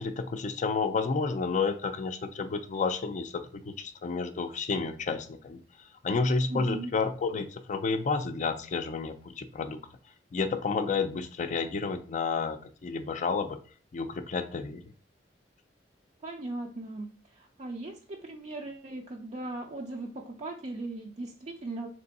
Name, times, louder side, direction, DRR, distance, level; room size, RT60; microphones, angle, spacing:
voice 1, 0.0-9.8 10.3-13.6 13.9-14.8, left 4 dB, 40° left, 9 dB, 0.4 m, -31 dB
voice 2, 6.5-6.9 16.2-21.9, right 2 dB, 40° right, 1 dB, 0.5 m, -38 dB
3.5 x 3.2 x 4.0 m, 0.41 s
head